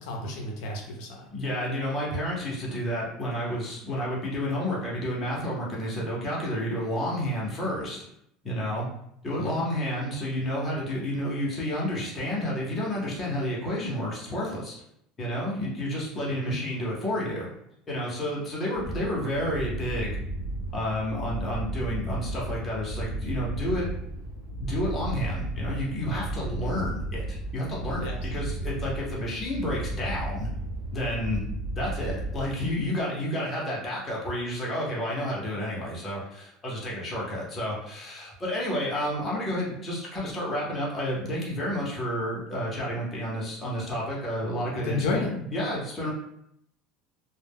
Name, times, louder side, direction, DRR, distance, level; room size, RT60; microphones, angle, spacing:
voice 1, 0.0-1.3 9.3-9.7 16.3-16.6 28.0-28.2 44.8-45.3, left 2 dB, 70° left, 0 dB, 0.5 m, -31 dB
voice 2, 1.3-8.0 8.4-8.9 9.2-14.7 15.2-17.5 17.9-20.2 20.7-23.9 24.6-30.5 30.9-31.4 31.8-46.1, equal, 15° left, -5 dB, 0.7 m, -30 dB
sound 1, 18.7-33.0, right 1 dB, 75° right, 0.9 m, -34 dB
2.1 x 2.1 x 3.4 m, 0.74 s
cardioid pair, 160°, 0 cm